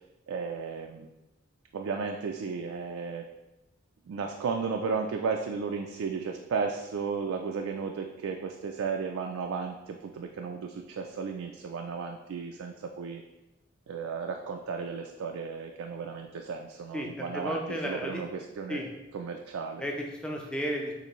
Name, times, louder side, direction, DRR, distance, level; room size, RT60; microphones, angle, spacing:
voice 1, 0.3-1.1 1.7-3.3 4.1-13.2 13.9-18.8 19.1-19.9, right 5 dB, 80° right, 3 dB, 0.4 m, -34 dB
voice 2, 16.9-18.2 18.7-18.9 19.8-20.9, equal, 5° left, 0 dB, 0.5 m, -33 dB
6.6 x 2.6 x 3.0 m, 1.0 s
head